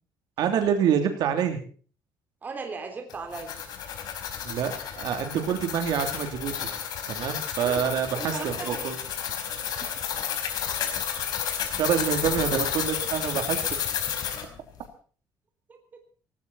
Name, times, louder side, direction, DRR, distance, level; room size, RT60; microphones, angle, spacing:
voice 1, 0.4-1.6 4.4-6.7 7.1-8.9 11.8-13.6, right 8 dB, 70° right, 6 dB, 3.1 m, -26 dB
voice 2, 2.4-3.6 7.6-8.8 15.7-15.8, right 4 dB, 25° right, 4 dB, 3.6 m, -37 dB
sound 1, 3.1-14.5, left 8 dB, 65° left, 4.4 m, -31 dB
19.0 x 17.0 x 4.2 m, 0.42 s
cardioid pair, 180°, 7 cm